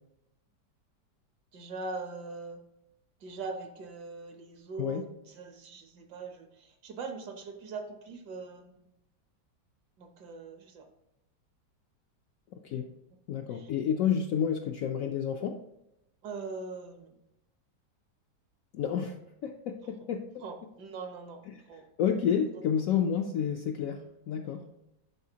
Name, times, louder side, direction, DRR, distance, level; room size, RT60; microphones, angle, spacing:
voice 1, 1.5-2.6 3.2-5.1 5.3-8.9 10.0-10.9 13.5-13.7 16.2-17.2 20.4-21.4 21.7-21.9 24.4-24.7, right 4 dB, 75° right, 5 dB, 1.5 m, -41 dB
voice 2, 13.3-15.6 18.7-19.2 19.4-20.4 21.5-21.6 22.0-24.7, left 8 dB, 70° left, 4 dB, 0.8 m, -30 dB
11.0 x 4.1 x 2.8 m, 0.87 s
omnidirectional pair, 1.9 m